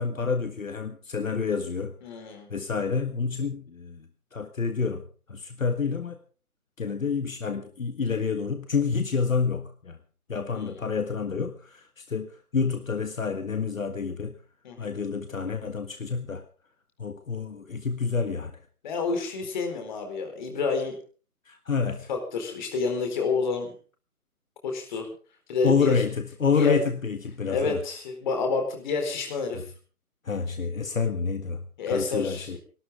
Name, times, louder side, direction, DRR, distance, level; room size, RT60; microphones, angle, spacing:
voice 1, 0.0-1.9 2.5-6.2 6.8-10.0 10.3-14.4 14.8-16.4 17.0-18.6 21.4-22.1 24.9-25.0 25.6-27.8 30.2-32.6, left 5 dB, 60° left, 8 dB, 1.8 m, -28 dB
voice 2, 2.0-2.5 10.5-10.8 14.6-14.9 18.8-21.0 22.1-23.7 24.6-25.1 25.5-26.0 26.5-26.8 27.5-29.6 31.8-32.6, left 4 dB, 30° left, 5 dB, 4.2 m, -29 dB
30.0 x 12.5 x 3.6 m, 0.38 s
figure-of-eight pair, 145°, 44 cm